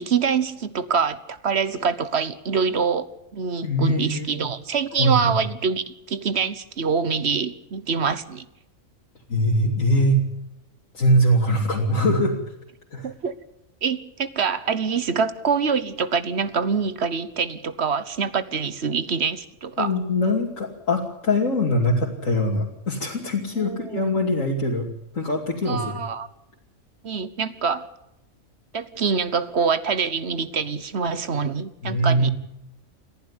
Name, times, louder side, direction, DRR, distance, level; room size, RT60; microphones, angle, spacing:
voice 1, 0.0-3.1 3.3-8.4 13.0-13.3 13.8-20.0 23.6-24.1 25.7-26.3 27.0-27.9 28.7-32.3, right 5 dB, 55° right, 1.3 m, -25 dB
voice 2, 3.6-4.5 5.0-5.3 9.3-10.2 10.9-12.3 12.9-13.1 19.8-24.9 25.1-25.9 31.8-32.3, equal, 75° left, 3.0 m, -22 dB
28.5 x 11.0 x 9.7 m
omnidirectional pair, 1.4 m